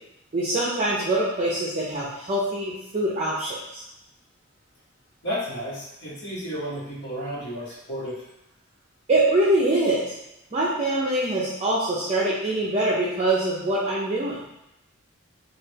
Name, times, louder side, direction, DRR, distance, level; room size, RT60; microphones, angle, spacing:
voice 1, 0.3-3.8 9.1-10.1 10.5-14.4, right 1 dB, 30° right, -6 dB, 0.5 m, -24 dB
voice 2, 5.2-8.2, equal, 55° left, -8 dB, 1.2 m, -32 dB
3.2 x 2.4 x 3.3 m, 0.89 s
head